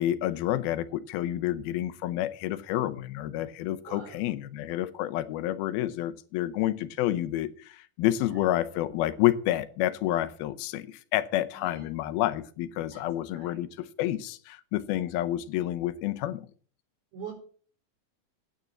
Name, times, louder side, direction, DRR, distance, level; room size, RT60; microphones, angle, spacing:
voice 1, 0.0-16.4, left 14 dB, 90° left, 12 dB, 2.7 m, -29 dB
voice 2, 3.8-4.2 8.3-8.4 11.5-11.9 12.9-13.0 13.3-13.7 17.1-17.3, right 6 dB, 80° right, 3 dB, 6.0 m, -43 dB
9.6 x 9.4 x 7.1 m, 0.44 s
omnidirectional pair, 4.2 m